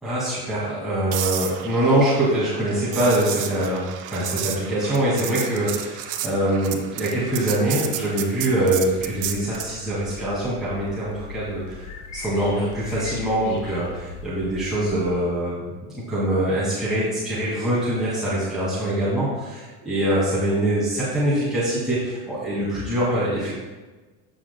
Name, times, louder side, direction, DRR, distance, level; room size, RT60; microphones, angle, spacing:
voice 1, 0.0-23.5, right 1 dB, ahead, -11 dB, 2.3 m, -24 dB
sound 1, 1.1-9.8 14.0-14.2, right 10 dB, 50° right, 0.8 m, -32 dB
sound 2, 8.8-15.1, left 3 dB, 75° left, 1.5 m, -39 dB
12.5 x 6.4 x 2.3 m, 1.3 s
supercardioid pair, 125°, 38 cm